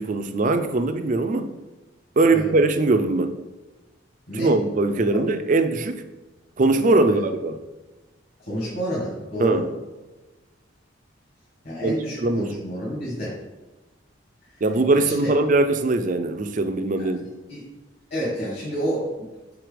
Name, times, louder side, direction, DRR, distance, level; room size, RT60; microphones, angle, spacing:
voice 1, 0.0-1.5 2.2-3.3 4.3-6.0 6.6-7.6 9.4-9.7 11.8-12.6 14.6-17.3, right 2 dB, 40° right, 8 dB, 0.4 m, -21 dB
voice 2, 8.4-9.6 11.6-13.3 14.5-14.6 15.0-15.3 17.0-17.1 17.5-17.7 18.1-19.3, equal, 55° left, -6 dB, 1.6 m, -29 dB
4.7 x 4.2 x 5.0 m, 1.2 s
head